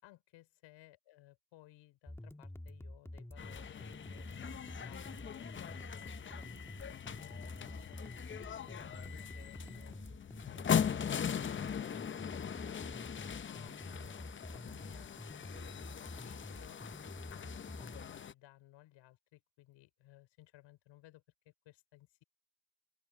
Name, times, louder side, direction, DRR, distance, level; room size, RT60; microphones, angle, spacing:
voice 1, 0.0-4.5 4.8-6.5 7.1-8.0 8.3-12.8 13.4-16.8 17.3-22.2, left 16 dB, 70° left, 5.4 m, -60 dB
sound 1, 2.1-18.1, left 1 dB, 5° left, 1.4 m, -48 dB
sound 2, 3.4-18.3, left 8 dB, 25° left, 0.7 m, -40 dB
open air
supercardioid pair, 90°, 46 cm